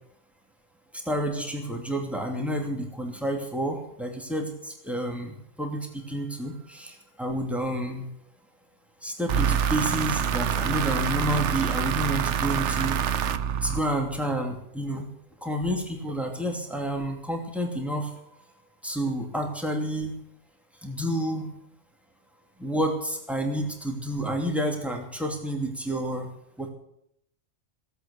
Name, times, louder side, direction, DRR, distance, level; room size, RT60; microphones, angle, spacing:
voice 1, 1.1-8.1 9.0-13.0 13.6-15.1 15.4-18.1 18.8-20.1 20.8-21.5 22.6-26.3 26.6-26.7, right 1 dB, ahead, 1 dB, 2.7 m, -29 dB
sound 1, 9.3-14.2, right 8 dB, 70° right, 1.0 m, -26 dB
17.0 x 8.2 x 8.4 m, 0.77 s
omnidirectional pair, 1.3 m